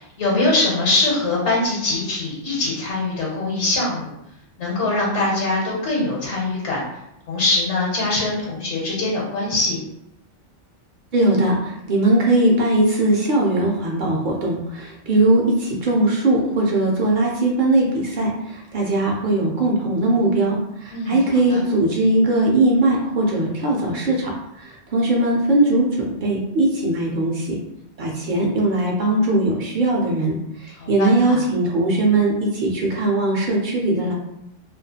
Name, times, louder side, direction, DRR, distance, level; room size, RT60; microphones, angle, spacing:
voice 1, 0.0-4.1 4.6-6.8 7.3-9.8 20.9-21.2 21.5-21.6 30.8-31.4, left 2 dB, 75° left, -4 dB, 1.0 m, -22 dB
voice 2, 11.1-27.6 28.0-34.1, right 2 dB, 55° right, -2 dB, 0.6 m, -20 dB
2.4 x 2.3 x 2.7 m, 0.82 s
omnidirectional pair, 1.3 m